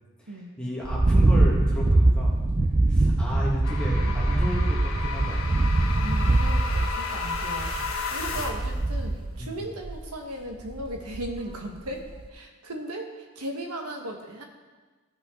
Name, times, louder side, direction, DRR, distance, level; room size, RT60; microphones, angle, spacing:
voice 1, 0.2-2.4 2.9-5.4 8.3-8.5 9.4-9.6, equal, 5° left, -5 dB, 1.6 m, -33 dB
sound 1, 0.8-9.4 9.8-10.1 10.7-11.6 11.9-12.3, right 2 dB, 25° right, 0.4 m, -23 dB
sound 2, 3.6-8.8, left 4 dB, 65° left, 1.3 m, -33 dB
voice 2, 6.0-7.7 8.1-12.0 12.3-14.4, right 1 dB, 90° right, 2 dB, 1.5 m, -37 dB
16.0 x 5.5 x 3.8 m, 1.3 s
head